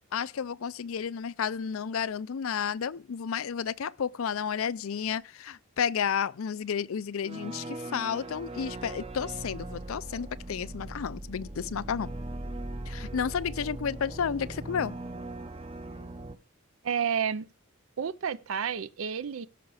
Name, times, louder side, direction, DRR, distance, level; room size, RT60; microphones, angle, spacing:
voice 1, 0.1-12.1 12.9-14.9, left 7 dB, 75° left, 0.4 m, -32 dB
sound 1, 7.2-16.4, right 1 dB, 25° right, 0.7 m, -39 dB
voice 2, 16.8-17.5 18.0-19.5, right 7 dB, 70° right, 0.5 m, -30 dB
16.5 x 6.0 x 4.8 m
head